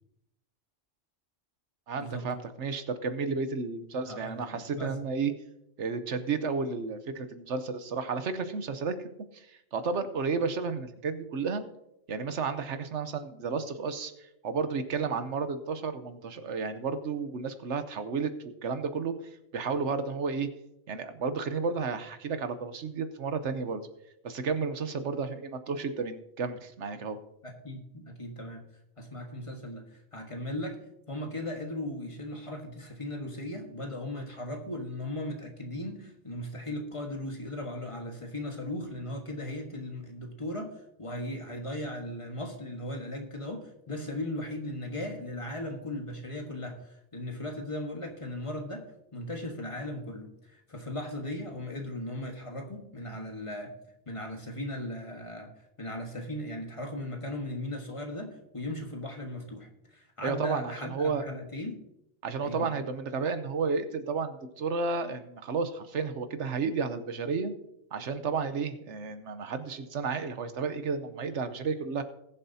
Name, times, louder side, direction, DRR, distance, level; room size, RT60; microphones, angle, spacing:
voice 1, 1.9-5.3 5.8-11.6 12.1-19.1 19.5-20.5 20.9-23.8 24.2-27.2 60.2-61.2 62.2-67.5 67.9-72.0, right 5 dB, 70° right, 10 dB, 1.1 m, -32 dB
voice 2, 4.1-4.9 27.4-28.6 29.0-30.8 31.1-53.7 54.1-55.5 55.8-61.8 62.4-62.7, left 1 dB, 25° left, 3 dB, 1.5 m, -37 dB
20.0 x 7.2 x 2.7 m, 0.83 s
omnidirectional pair, 1.3 m